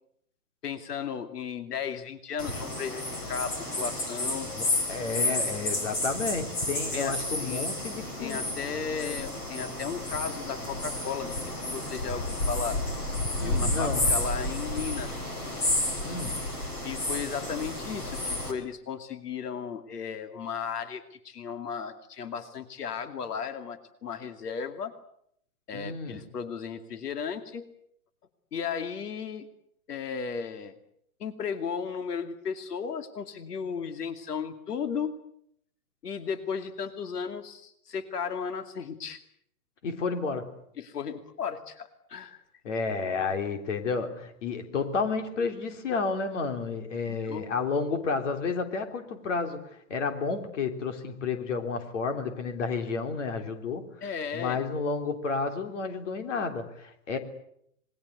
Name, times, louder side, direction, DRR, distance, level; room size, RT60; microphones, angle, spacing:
voice 1, 0.6-4.5 6.9-7.7 8.2-12.8 13.4-15.3 16.8-24.9 25.7-27.6 28.5-29.5 29.9-30.8 31.2-35.1 36.0-39.2 40.8-42.4 46.9-47.5 54.0-54.6, left 6 dB, 85° left, 9 dB, 2.6 m, -35 dB
sound 1, 2.4-18.5, left 1 dB, 20° left, 4.0 m, -31 dB
voice 2, 4.6-8.4 13.4-14.1 16.0-16.5 25.7-26.2 39.8-40.5 42.6-53.9 54.3-57.2, left 4 dB, 50° left, 7 dB, 3.5 m, -31 dB
27.5 x 21.5 x 8.2 m, 0.71 s
hypercardioid pair, 175°, 46 cm